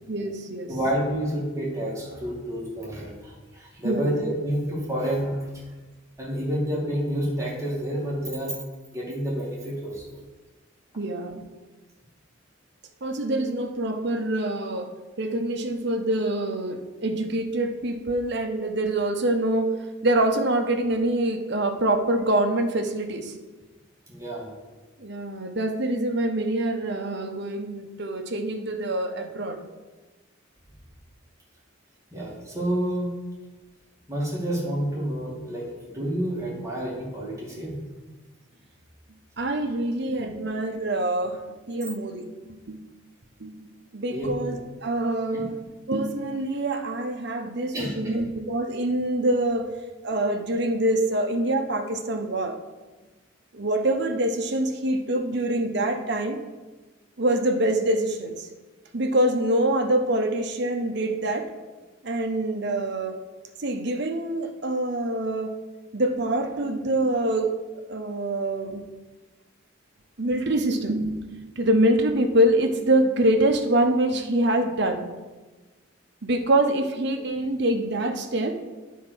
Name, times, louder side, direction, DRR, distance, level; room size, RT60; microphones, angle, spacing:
voice 1, 0.1-0.7 3.8-4.1 11.0-11.4 13.0-14.9 15.2-19.7 20.0-23.3 25.0-29.6 39.4-41.4 41.7-42.8 43.4-45.5 45.9-49.7 50.0-52.6 53.5-56.4 57.2-58.5 58.9-61.5 62.0-63.2 63.6-65.5 65.9-67.5 67.9-68.8 70.2-75.0 76.2-78.6, right 1 dB, 55° right, 5 dB, 0.9 m, -25 dB
voice 2, 0.7-5.5 6.2-8.6 8.9-10.2 24.1-24.5 32.1-33.1 34.1-37.8 40.4-40.5 44.1-44.3 45.3-45.4 47.7-48.2, equal, 15° right, -5 dB, 2.1 m, -29 dB
9.4 x 4.6 x 6.1 m, 1.2 s
head